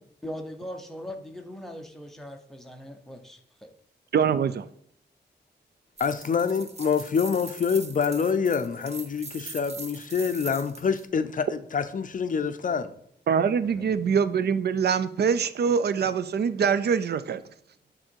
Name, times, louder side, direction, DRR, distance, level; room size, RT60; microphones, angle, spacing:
voice 1, 0.2-3.7 13.6-13.8, equal, ahead, 4 dB, 0.8 m, -40 dB
voice 2, 4.1-4.7 13.3-17.4, right 6 dB, 65° right, 14 dB, 0.4 m, -24 dB
voice 3, 6.0-12.9, left 6 dB, 50° left, 10 dB, 0.5 m, -26 dB
sound 1, 6.0-11.1, right 4 dB, 35° right, 0.7 m, -42 dB
8.8 x 3.8 x 4.5 m, 0.68 s
wide cardioid pair, 150°, 18 cm